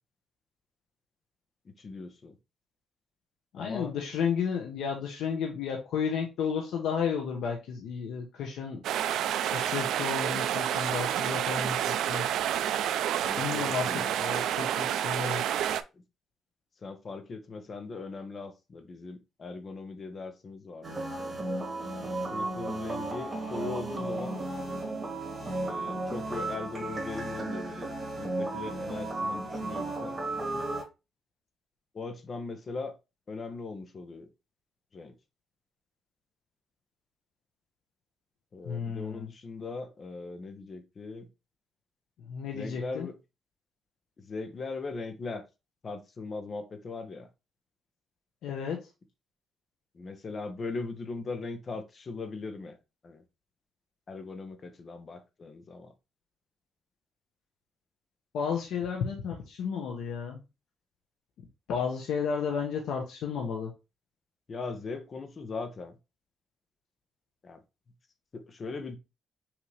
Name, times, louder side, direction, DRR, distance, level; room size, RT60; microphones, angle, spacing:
voice 1, 1.6-2.4 3.6-4.0 13.2-14.2 15.9-16.0 16.8-21.4 22.2-24.4 25.6-27.9 28.2-30.7 31.9-32.9 33.3-34.3 34.9-35.1 38.5-41.3 42.5-43.2 44.2-45.4 45.8-47.3 49.9-52.8 53.0-53.2 54.1-55.9 64.5-66.0 67.4-67.6 68.3-69.0, left 3 dB, 30° left, 0.7 m, -39 dB
voice 2, 3.5-8.8 9.5-12.3 13.4-15.4 38.6-39.3 42.3-43.1 48.4-48.9 58.3-60.4 61.7-63.7, left 6 dB, 85° left, 0.9 m, -32 dB
sound 1, 8.8-15.8, right 10 dB, 90° right, 0.3 m, -29 dB
sound 2, 20.8-30.8, right 2 dB, 15° right, 1.8 m, -34 dB
5.9 x 2.7 x 3.2 m
cardioid pair, 160°, 0 cm